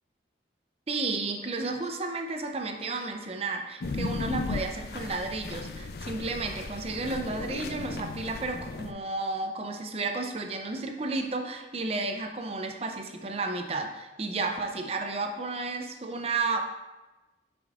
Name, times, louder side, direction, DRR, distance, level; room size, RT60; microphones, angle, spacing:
voice 1, 0.9-16.6, right 3 dB, 35° right, 4 dB, 0.5 m, -32 dB
sound 1, 3.8-8.9, left 3 dB, 60° left, 0.4 m, -36 dB
9.0 x 5.2 x 2.4 m, 1.1 s
head